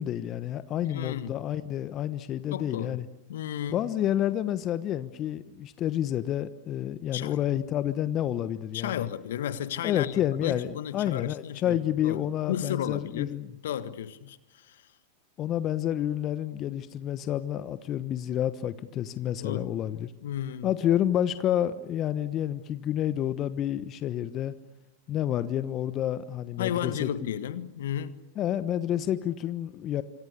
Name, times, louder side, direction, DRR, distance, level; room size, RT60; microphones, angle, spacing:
voice 1, 0.0-3.1 3.7-9.1 9.8-13.5 15.4-20.1 20.6-24.5 25.1-27.1 28.4-30.0, left 11 dB, 35° left, 1.1 m, -29 dB
voice 2, 0.8-1.4 2.5-3.0 3.3-3.8 7.1-7.4 8.7-11.8 12.0-13.4 13.6-14.8 19.4-19.7 20.2-20.7 26.6-28.2, left 10 dB, 70° left, 1.6 m, -33 dB
27.5 x 26.5 x 6.9 m
hypercardioid pair, 95°, 0 cm